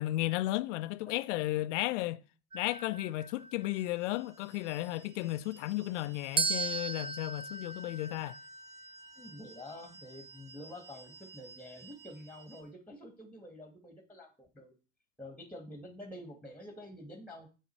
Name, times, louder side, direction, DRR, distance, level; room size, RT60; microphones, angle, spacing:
voice 1, 0.0-2.2 2.5-8.4, left 17 dB, 60° left, 0.7 m, -34 dB
sound 1, 2.5-4.4 6.4-10.4, right 4 dB, 15° right, 0.5 m, -38 dB
sound 2, 3.6-12.6, right 5 dB, 80° right, 5.9 m, -57 dB
voice 2, 9.2-14.8 15.2-17.5, left 1 dB, 5° left, 1.9 m, -48 dB
9.1 x 7.3 x 4.6 m
figure-of-eight pair, 75°, 41 cm